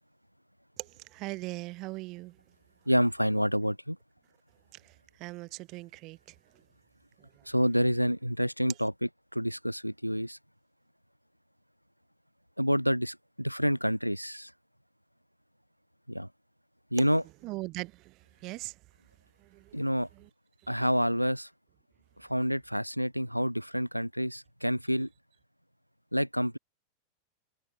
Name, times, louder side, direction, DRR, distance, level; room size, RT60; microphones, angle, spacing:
voice 1, 0.8-2.4 4.7-6.3 7.2-7.5 17.4-18.8 19.4-20.3, right 21 dB, 40° right, 0.6 m, -41 dB
voice 2, 2.9-4.0 7.5-10.4 12.6-14.5 16.1-16.3 16.9-17.2 19.7-20.1 20.7-21.5 22.2-25.1 26.1-26.6, equal, 90° right, 0.4 m, -28 dB
open air
figure-of-eight pair, 90°, 0 cm